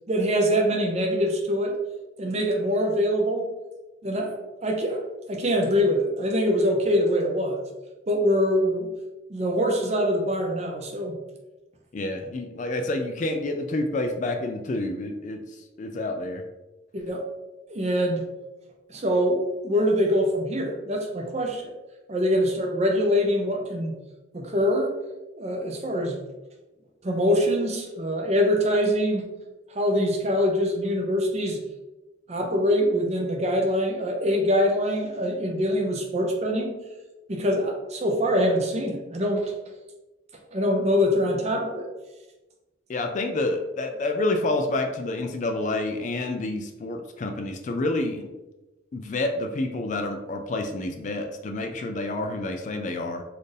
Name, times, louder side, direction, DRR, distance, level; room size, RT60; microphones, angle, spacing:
voice 1, 0.1-1.8 2.2-3.5 4.0-5.0 5.3-7.6 8.1-8.9 9.3-11.2 16.9-17.2 17.7-18.2 18.9-21.7 22.1-23.9 24.3-24.9 25.4-26.2 27.0-29.3 29.7-31.6 32.3-36.7 37.3-39.5 40.5-41.9, equal, 30° right, 1 dB, 0.5 m, -24 dB
voice 2, 11.9-16.4 42.9-48.3 48.9-53.2, left 2 dB, 35° left, 5 dB, 0.3 m, -28 dB
4.2 x 2.5 x 3.3 m, 1.1 s
head